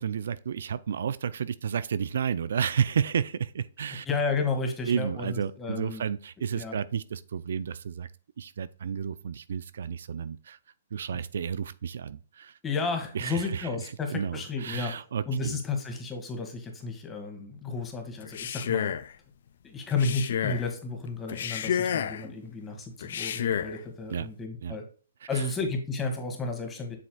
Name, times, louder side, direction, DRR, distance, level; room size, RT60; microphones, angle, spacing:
voice 1, 0.0-4.1 4.9-8.1 8.4-10.6 10.9-12.6 13.1-13.7 14.1-15.6 24.1-24.3 24.6-24.8 25.2-25.4, right 7 dB, 70° right, 0.4 m, -31 dB
voice 2, 4.1-6.0 6.5-6.8 12.6-18.9 19.6-24.8 25.3-27.0, left 4 dB, 15° left, 1.7 m, -32 dB
Male speech man speaking, 18.2-19.1 19.9-20.7 21.3-22.3 23.0-23.8, left 8 dB, 60° left, 0.6 m, -30 dB
7.7 x 6.2 x 2.3 m
hypercardioid pair, 135°, 0 cm